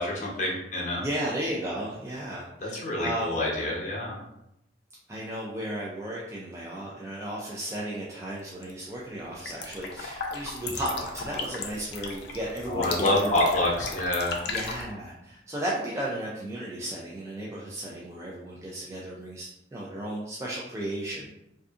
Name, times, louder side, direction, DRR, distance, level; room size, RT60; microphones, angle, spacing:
voice 1, 0.0-1.0 2.6-4.2 12.7-14.3, left 1 dB, 45° left, -3 dB, 0.8 m, -27 dB
voice 2, 1.0-3.3 5.1-13.3 14.5-21.3, right 1 dB, 15° right, -5 dB, 0.3 m, -34 dB
sound 1, 8.5-8.8 9.1-14.8, left 4 dB, 65° left, 0.4 m, -36 dB
2.6 x 2.4 x 2.4 m, 0.85 s
head